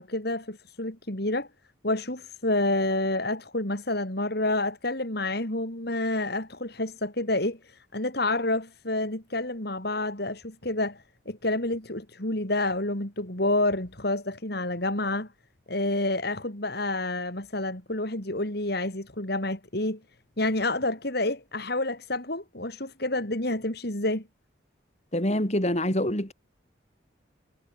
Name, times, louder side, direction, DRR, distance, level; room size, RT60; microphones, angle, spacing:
voice 1, 0.0-1.5 1.8-15.3 15.7-20.0 20.4-24.3, left 2 dB, 55° left, 3.9 m, -29 dB
voice 2, 25.1-26.3, left 1 dB, 35° left, 5.1 m, -25 dB
head